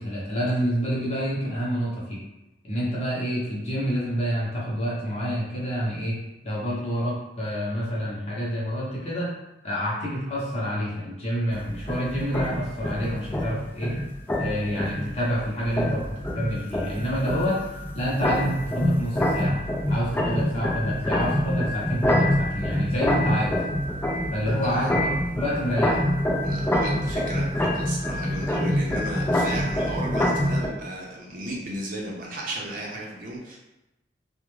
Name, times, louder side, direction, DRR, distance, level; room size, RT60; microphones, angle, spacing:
voice 1, 0.0-2.2 2.6-6.2 6.4-9.3 9.6-13.9 14.4-17.6 17.9-19.6 19.9-23.6 24.3-26.0, equal, 35° left, -6 dB, 0.7 m, -28 dB
sound 1, 11.5-30.7, left 1 dB, 10° left, 0.3 m, -26 dB
voice 2, 24.6-24.9 26.4-33.6, right 1 dB, 50° right, -3 dB, 0.6 m, -34 dB
2.4 x 2.1 x 3.1 m, 0.98 s
head